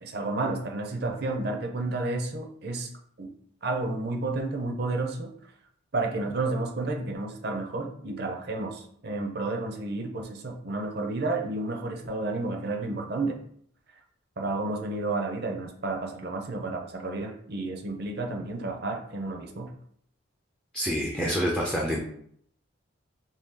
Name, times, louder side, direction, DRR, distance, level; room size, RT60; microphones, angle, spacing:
voice 1, 0.0-2.9 3.2-3.3 3.6-5.3 5.9-13.4 14.4-19.7, right 2 dB, 50° right, 3 dB, 0.5 m, -31 dB
voice 2, 20.7-22.0, equal, 5° left, -3 dB, 0.3 m, -27 dB
3.1 x 2.7 x 3.6 m, 0.65 s
head